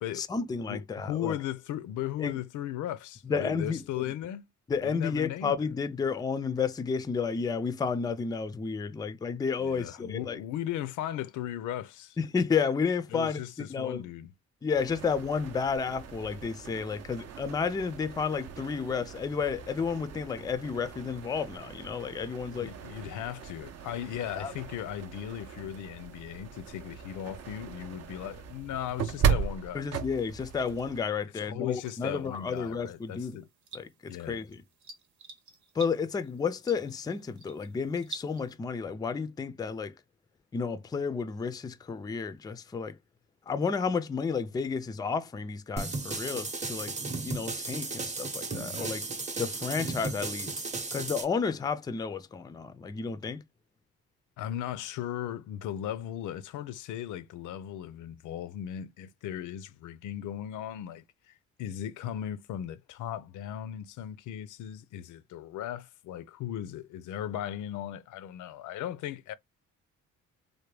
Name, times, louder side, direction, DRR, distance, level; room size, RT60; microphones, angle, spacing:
voice 1, 0.1-1.4 2.2-2.3 3.3-4.0 4.7-10.4 12.2-13.4 13.7-14.0 14.6-22.7 24.4-24.5 29.7-33.4 33.7-34.6 35.8-39.9 40.5-42.9 43.5-46.9 47.2-49.0 49.4-50.6 50.9-53.4, left 5 dB, 15° left, 0.3 m, -31 dB
voice 2, 0.7-4.5 4.8-5.6 9.6-12.2 13.1-14.3 22.6-29.9 31.4-33.5 34.1-34.4 54.4-61.3 61.6-69.3, left 11 dB, 75° left, 0.5 m, -37 dB
sound 1, 14.7-31.0, right 7 dB, 55° right, 0.6 m, -37 dB
sound 2, 31.7-38.5, right 3 dB, 75° right, 0.9 m, -50 dB
sound 3, 45.8-51.2, right 3 dB, 25° right, 0.7 m, -35 dB
3.3 x 2.2 x 3.1 m
cardioid pair, 90°, 30 cm